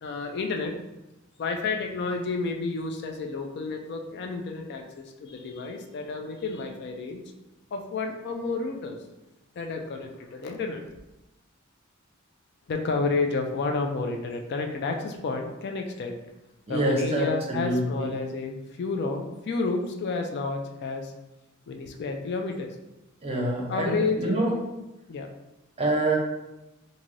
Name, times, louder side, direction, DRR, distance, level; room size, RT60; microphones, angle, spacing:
voice 1, 0.0-0.8 1.4-7.3 7.7-9.0 9.6-10.9 12.7-16.1 16.7-21.1 21.7-22.8 23.7-24.4 25.1-25.3, left 3 dB, 55° left, 4 dB, 0.3 m, -30 dB
voice 2, 16.7-18.1 23.2-24.5 25.8-26.2, right 1 dB, 30° right, -1 dB, 0.6 m, -26 dB
3.1 x 2.6 x 2.5 m, 0.96 s
head